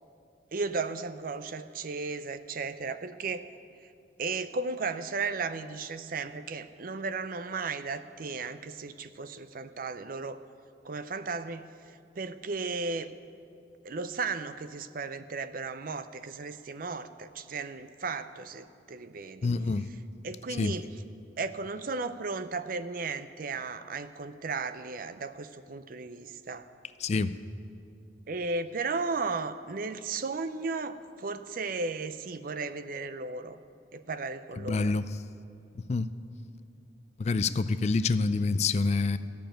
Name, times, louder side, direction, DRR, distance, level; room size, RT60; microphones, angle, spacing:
voice 1, 0.5-3.4 4.2-10.4 10.8-11.6 12.2-13.1 13.8-19.5 20.2-20.9 21.4-26.7 28.3-33.6 33.9-34.9, right 4 dB, 50° right, 12 dB, 0.5 m, -35 dB
voice 2, 19.4-19.9 20.6-20.7 27.0-27.3 34.6-35.1 35.7-36.1 37.2-39.2, left 3 dB, 35° left, 14 dB, 0.3 m, -27 dB
13.5 x 6.8 x 8.9 m, 2.5 s
head